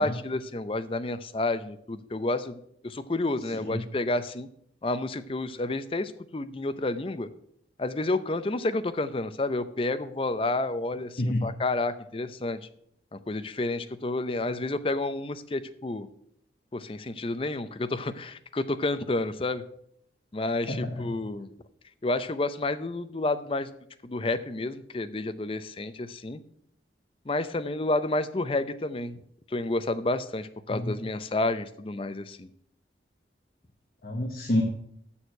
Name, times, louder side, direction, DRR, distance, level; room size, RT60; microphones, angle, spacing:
voice 1, 0.0-4.5 4.8-7.3 7.8-12.6 13.1-16.1 16.7-19.6 20.3-21.5 22.0-23.7 24.0-26.4 27.3-29.2 29.5-32.5, left 2 dB, 30° left, 12 dB, 0.5 m, -30 dB
voice 2, 20.7-21.1 30.7-30.9 34.0-34.6, left 1 dB, 55° left, 1 dB, 1.1 m, -28 dB
7.1 x 6.4 x 7.7 m, 0.71 s
head